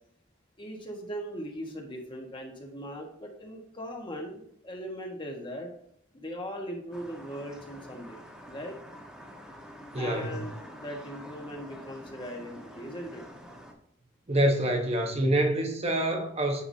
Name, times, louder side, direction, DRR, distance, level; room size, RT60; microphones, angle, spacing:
voice 1, 0.6-5.7 6.1-8.2 8.5-8.8 9.8-13.2, equal, 25° left, 1.5 m, -39 dB
sound 1, 6.9-13.7, equal, 5° right, 1.3 m, -47 dB
voice 2, 9.9-10.3 14.3-16.6, right 1 dB, 35° right, 1.1 m, -26 dB
9.6 x 6.0 x 2.8 m
head